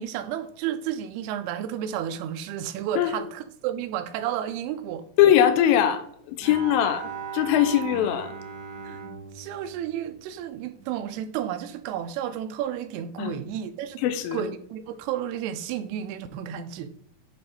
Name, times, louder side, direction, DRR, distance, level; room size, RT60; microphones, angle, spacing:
voice 1, 0.0-5.0 8.8-9.0 9.4-14.0 14.3-16.9, right 10 dB, 90° right, 2.6 m, -32 dB
voice 2, 5.2-8.3 13.2-13.3 14.0-14.5, left 10 dB, 80° left, 2.3 m, -21 dB
Bowed string instrument, 6.4-10.9, right 6 dB, 70° right, 1.6 m, -39 dB
8.4 x 3.2 x 4.2 m
omnidirectional pair, 4.5 m